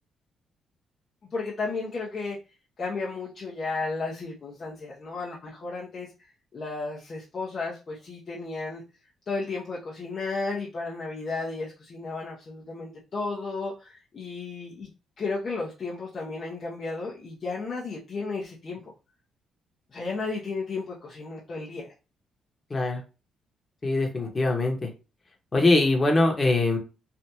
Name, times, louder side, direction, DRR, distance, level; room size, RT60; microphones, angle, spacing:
voice 1, 1.3-2.4 2.8-8.8 9.3-14.9 15.2-18.9 19.9-21.9, left 3 dB, 45° left, -5 dB, 0.8 m, -33 dB
voice 2, 22.7-23.0 23.8-24.9 25.5-26.8, left 2 dB, 30° left, 2 dB, 1.2 m, -22 dB
3.4 x 2.4 x 2.9 m, 0.31 s
cardioid pair, 90°, 0 cm